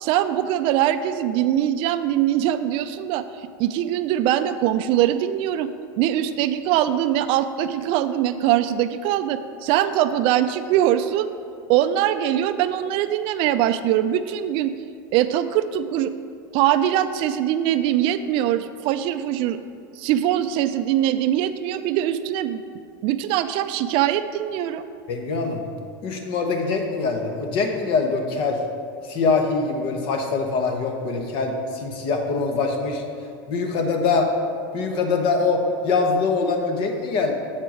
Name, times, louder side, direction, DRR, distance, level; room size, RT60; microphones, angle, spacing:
voice 1, 0.0-5.7 6.0-11.3 11.7-14.7 15.1-16.1 16.5-19.6 20.0-22.6 23.0-24.8, right 11 dB, 55° right, 10 dB, 0.4 m, -22 dB
voice 2, 25.1-25.6 26.0-28.6 29.0-33.0 33.5-34.3 34.7-37.3, left 4 dB, 50° left, 3 dB, 1.1 m, -23 dB
7.4 x 4.5 x 6.2 m, 2.3 s
supercardioid pair, 115°, 11 cm